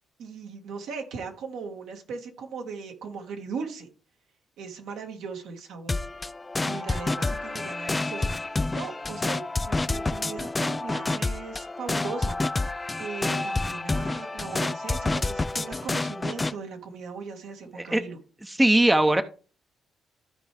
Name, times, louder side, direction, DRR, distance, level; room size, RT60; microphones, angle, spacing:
voice 1, 0.2-3.9 4.6-6.0 6.6-12.4 13.0-18.2, right 5 dB, 80° right, 3 dB, 1.8 m, -38 dB
sound 1, 5.9-16.5, left 2 dB, 20° left, 0.3 m, -29 dB
voice 2, 18.4-19.2, right 1 dB, 10° right, 10 dB, 0.7 m, -20 dB
13.5 x 4.6 x 3.4 m, 0.37 s
cardioid pair, 90°, 0 cm